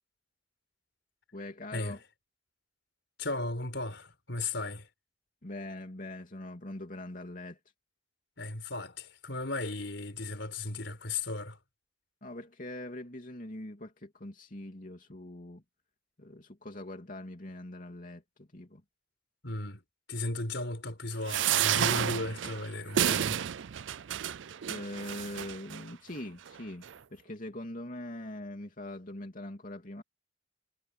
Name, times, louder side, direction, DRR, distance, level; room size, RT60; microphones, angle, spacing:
voice 1, 1.3-2.0 5.4-7.6 12.2-15.6 16.2-18.8 24.7-30.0, left 1 dB, 45° left, 3.0 m, -42 dB
voice 2, 3.2-4.9 8.4-11.6 19.4-19.8 20.1-23.4, left 2 dB, 75° left, 4.5 m, -36 dB
sound 1, 21.3-25.8 26.5-26.6 26.8-26.9, right 10 dB, 85° right, 0.5 m, -30 dB
head